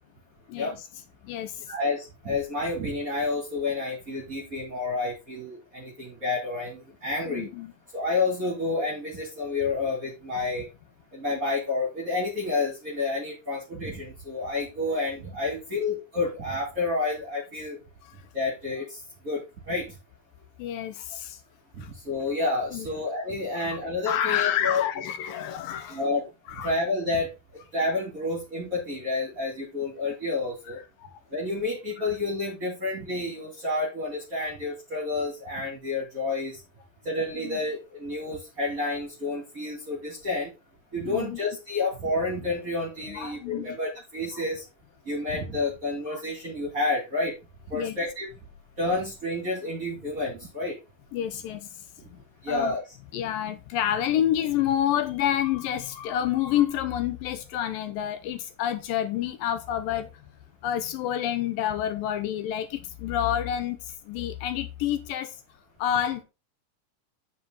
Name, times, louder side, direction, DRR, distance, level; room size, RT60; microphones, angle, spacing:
voice 1, 0.5-0.8 1.2-1.7 7.3-7.7 18.0-18.2 20.6-21.4 21.8-21.9 22.7-22.9 23.5-23.7 24.0-26.0 26.5-26.7 31.0-31.1 32.0-32.1 37.4-37.6 41.1-41.4 43.1-43.8 46.1-46.2 47.7-48.0 51.1-52.2 52.5-52.8 53.1-60.1 60.6-65.4 65.8-66.2, left 11 dB, 80° left, 2.0 m, -29 dB
voice 2, 1.7-7.5 7.9-10.7 11.1-17.8 18.3-19.9 21.7-24.8 25.9-26.2 26.6-27.3 27.7-30.8 31.3-36.6 37.0-40.5 40.9-44.6 45.1-47.3 47.7-48.3 48.8-50.8 52.4-52.8, left 3 dB, 25° right, 2.4 m, -29 dB
9.6 x 6.1 x 4.0 m
omnidirectional pair, 4.8 m